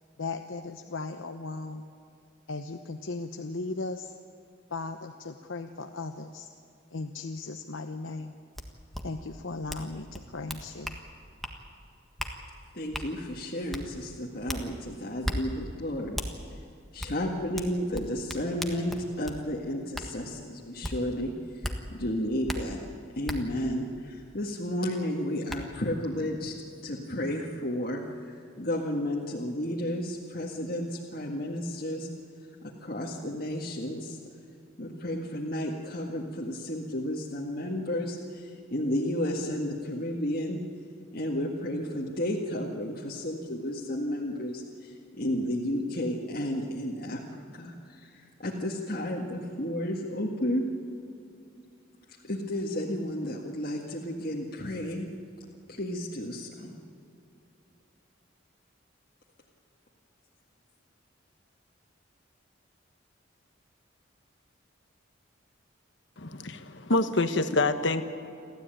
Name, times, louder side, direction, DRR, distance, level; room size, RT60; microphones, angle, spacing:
voice 1, 0.2-1.9 2.5-4.1 4.7-6.5 6.9-8.3 9.0-11.0, left 3 dB, 85° left, 5 dB, 0.9 m, -37 dB
sound 1, 8.6-8.7 8.9-9.0 9.7-9.9 10.1-11.0 11.4-11.6 12.2-12.3 12.9-13.1 13.7-13.8 14.5-14.6 15.2-15.4 16.2-16.3 17.0-17.1 17.6-19.4 19.9-20.1 20.8-20.9 21.6-21.8 22.5-22.6 23.3-23.4 24.9-25.0 25.5-25.6, equal, ahead, 1.6 m, -34 dB
voice 2, 12.7-16.2 16.9-21.7 21.9-22.8 23.2-26.5 26.8-32.1 32.8-34.2 34.8-40.6 41.1-50.7 52.2-55.1 55.7-56.7, left 1 dB, 50° left, -2 dB, 1.8 m, -32 dB
voice 3, 66.2-68.0, left 2 dB, 65° left, 9 dB, 1.3 m, -26 dB
29.0 x 13.0 x 9.0 m, 2.6 s
head